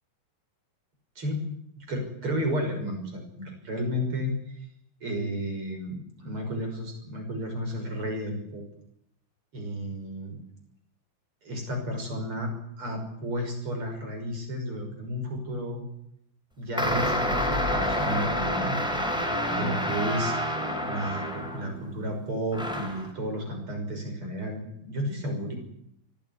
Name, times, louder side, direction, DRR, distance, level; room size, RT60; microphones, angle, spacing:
voice 1, 1.8-4.7 5.0-8.6 9.5-10.4 11.4-15.8 16.6-18.7 19.5-20.3 20.8-25.5, equal, 35° right, 3 dB, 6.8 m, -32 dB
sound 1, 16.8-21.8 22.5-23.1, equal, ahead, 3.9 m, -28 dB
24.0 x 14.5 x 9.8 m, 0.75 s
omnidirectional pair, 4.1 m